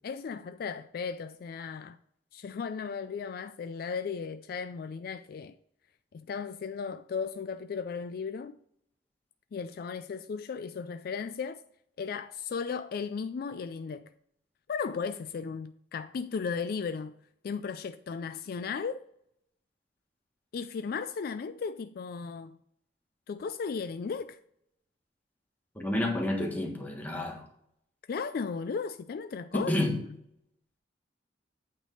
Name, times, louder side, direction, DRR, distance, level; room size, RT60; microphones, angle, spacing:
voice 1, 0.0-2.0 2.3-5.5 6.1-8.6 9.5-11.6 12.0-14.1 14.7-17.2 17.4-19.0 20.5-22.6 23.3-24.4 28.1-29.7, left 5 dB, 60° left, 0.3 m, -35 dB
voice 2, 25.7-27.4 29.5-30.0, left 1 dB, 10° left, 1.5 m, -29 dB
8.8 x 3.5 x 5.4 m
head